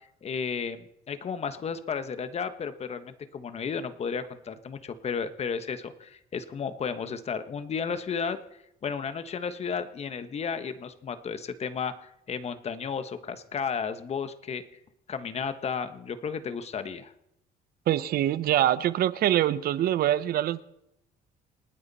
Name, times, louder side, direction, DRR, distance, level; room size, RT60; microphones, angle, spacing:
voice 1, 0.2-8.4 8.8-14.6 15.1-17.1, left 6 dB, 40° left, 11 dB, 1.3 m, -33 dB
voice 2, 17.9-20.6, right 12 dB, 65° right, 16 dB, 0.8 m, -24 dB
28.0 x 9.7 x 4.2 m, 0.81 s
cardioid pair, 110°, 17 cm